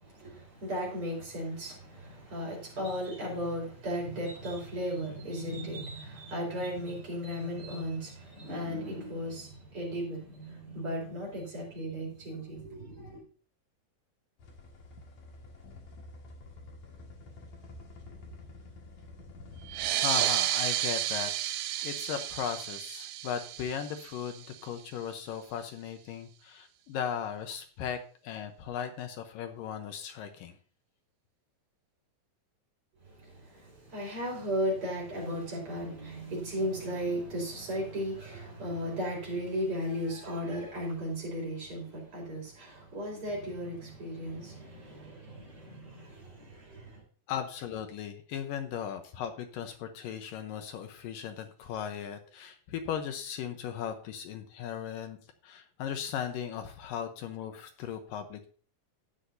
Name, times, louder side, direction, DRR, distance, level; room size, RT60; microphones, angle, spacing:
voice 1, 0.0-13.2 33.1-47.0, equal, 35° right, 5.5 m, -36 dB
sound 1, 14.4-19.9, left 2 dB, 55° left, 3.1 m, -49 dB
sound 2, 19.7-24.8, right 13 dB, 80° right, 2.3 m, -32 dB
voice 2, 20.0-30.6 47.3-55.2 55.4-58.5, left 8 dB, 75° left, 2.5 m, -37 dB
12.5 x 9.7 x 2.7 m
omnidirectional pair, 4.1 m